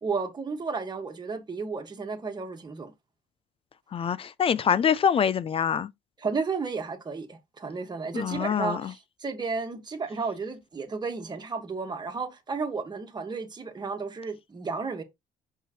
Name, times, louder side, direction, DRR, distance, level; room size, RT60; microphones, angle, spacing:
voice 1, 0.0-2.9 6.2-15.0, right 4 dB, 25° right, 1.6 m, -33 dB
voice 2, 3.9-5.9 8.1-8.9, left 7 dB, 35° left, 0.4 m, -25 dB
5.7 x 5.6 x 3.0 m
cardioid pair, 110°, 17 cm